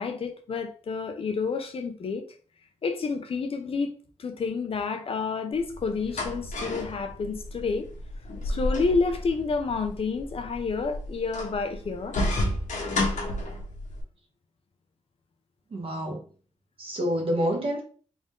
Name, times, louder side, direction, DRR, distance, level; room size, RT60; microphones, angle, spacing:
voice 1, 0.0-2.2 2.8-3.9 4.2-7.9 8.4-12.2, left 4 dB, 50° left, 0.5 m, -29 dB
sound 1, 5.5-14.0, left 1 dB, 80° left, 1.2 m, -32 dB
voice 2, 15.7-16.2 16.8-17.8, equal, 45° right, 1.0 m, -27 dB
3.7 x 2.6 x 3.6 m
wide cardioid pair, 170°, 13 cm